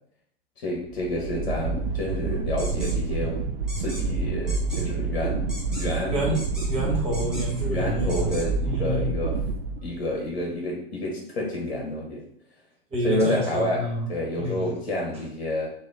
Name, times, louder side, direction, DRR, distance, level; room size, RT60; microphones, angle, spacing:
voice 1, 0.6-3.4 3.8-6.3 7.7-9.4 9.8-12.2 13.0-15.7, left 1 dB, 65° left, -1 dB, 1.1 m, -29 dB
sound 1, 0.8-10.3, right 4 dB, 60° right, 0.5 m, -28 dB
sound 2, 2.6-2.9 3.7-4.0 4.5-4.8 5.5-6.0 6.3-6.8 7.1-7.6 8.1-8.5, left 1 dB, ahead, 1.2 m, -39 dB
voice 2, 6.1-6.4 6.7-9.1 12.9-14.1 14.4-14.7, equal, 20° right, -4 dB, 1.7 m, -28 dB
4.1 x 2.7 x 3.6 m, 0.68 s
figure-of-eight pair, 95°, 31 cm